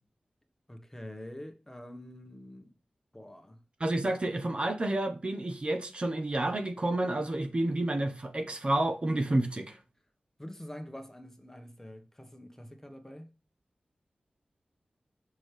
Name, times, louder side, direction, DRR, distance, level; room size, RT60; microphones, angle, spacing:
voice 1, 0.7-2.7 3.1-3.6 10.4-13.3, left 1 dB, 15° left, 1.2 m, -46 dB
voice 2, 3.8-9.8, right 1 dB, 40° right, 1.0 m, -30 dB
6.2 x 5.9 x 3.3 m
wide cardioid pair, 70°, 3 cm